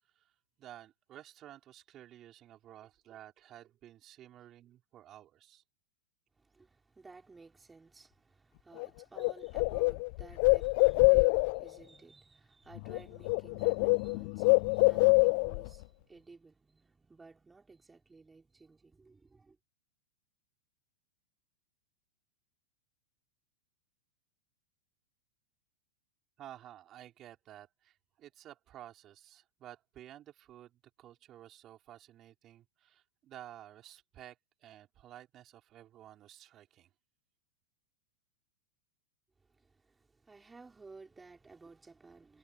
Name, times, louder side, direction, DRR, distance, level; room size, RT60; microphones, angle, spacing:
voice 1, 0.6-5.6 26.4-36.9, right 12 dB, 35° right, 5.9 m, -53 dB
voice 2, 6.4-19.6 39.5-42.4, right 3 dB, 10° right, 4.9 m, -56 dB
Bird, 8.8-8.9 9.2-11.7 12.8-13.0 13.2-15.7, left 30 dB, 55° left, 0.3 m, -25 dB
hypercardioid pair, 110°, 0 cm